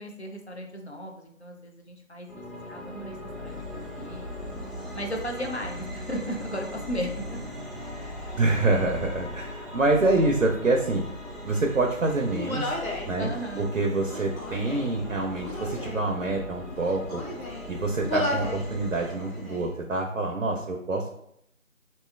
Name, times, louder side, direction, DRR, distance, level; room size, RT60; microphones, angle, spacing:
voice 1, 0.0-4.3 4.9-7.5 13.2-13.7, equal, 55° left, 1 dB, 0.5 m, -36 dB
sound 1, 2.3-19.7, left 1 dB, ahead, 0.5 m, -39 dB
voice 2, 8.3-11.0 11.4-12.7 13.0-17.2 17.7-21.1, right 2 dB, 75° right, 1 dB, 0.6 m, -26 dB
Human voice, 12.3-13.1 14.0-14.9 15.4-16.1 16.7-17.7 18.0-18.6 19.0-19.7, left 1 dB, 90° left, 0.9 m, -33 dB
3.0 x 2.8 x 2.3 m, 0.72 s
figure-of-eight pair, 175°, 41 cm